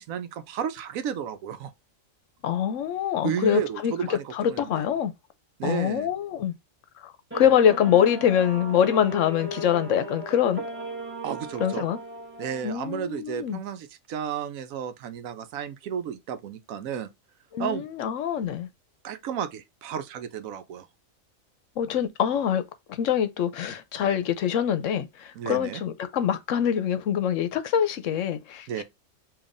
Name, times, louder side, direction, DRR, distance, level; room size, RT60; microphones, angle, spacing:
voice 1, 0.0-1.7 3.2-4.8 5.6-6.1 11.2-11.8 12.4-17.1 17.6-17.8 19.0-20.9 25.4-25.8 28.7-28.8, right 8 dB, 85° right, 1.0 m, -32 dB
voice 2, 2.4-5.1 5.6-6.5 7.0-10.6 11.6-12.0 12.6-13.6 17.5-18.7 21.8-22.6 22.9-28.8, left 9 dB, 70° left, 0.9 m, -24 dB
sound 1, 7.3-12.6, equal, 10° right, 1.3 m, -36 dB
7.0 x 2.8 x 2.5 m
omnidirectional pair, 1.4 m